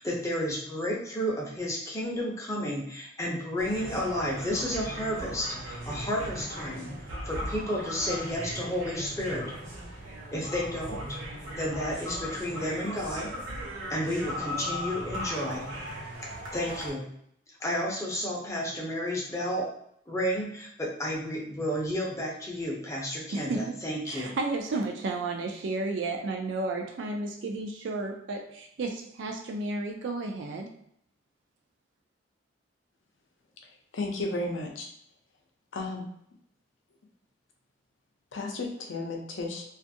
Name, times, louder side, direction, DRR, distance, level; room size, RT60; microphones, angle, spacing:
voice 1, 0.0-6.9 7.3-9.4 10.3-11.0 11.6-13.3 13.9-15.7 16.5-17.1 17.6-19.7 20.1-24.3, equal, 15° left, -3 dB, 0.5 m, -31 dB
sound 1, 3.6-16.9, equal, 85° right, 0.7 m, -38 dB
voice 2, 23.3-23.7 24.1-30.7, right 3 dB, 65° right, 2 dB, 0.3 m, -32 dB
voice 3, 33.9-34.9 35.7-36.1 38.3-39.6, left 2 dB, 70° left, 2 dB, 0.6 m, -33 dB
2.5 x 2.4 x 2.6 m, 0.70 s
head